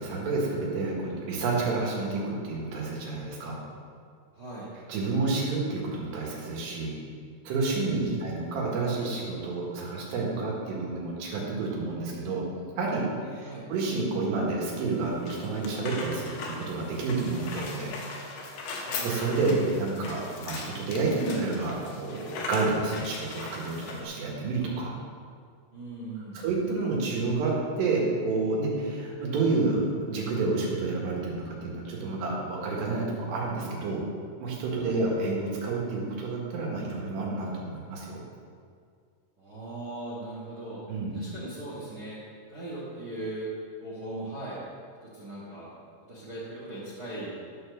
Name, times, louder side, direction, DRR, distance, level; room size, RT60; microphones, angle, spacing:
voice 1, 0.0-3.6 4.9-7.0 7.5-12.4 12.8-17.9 18.7-25.0 26.3-34.0 34.4-38.2 40.9-41.2, right 3 dB, 85° right, -3 dB, 3.9 m, -29 dB
voice 2, 4.3-4.7 7.8-8.3 13.4-13.7 18.8-19.1 25.7-26.4 34.8-35.0 39.4-40.8 41.1-42.2 42.5-43.5 43.8-44.6 45.0-45.7 46.1-47.4, right 1 dB, 50° right, -6 dB, 1.1 m, -39 dB
sound 1, 14.9-24.0, left 3 dB, 80° left, 3.3 m, -39 dB
12.5 x 4.5 x 6.8 m, 2.2 s
omnidirectional pair, 4.7 m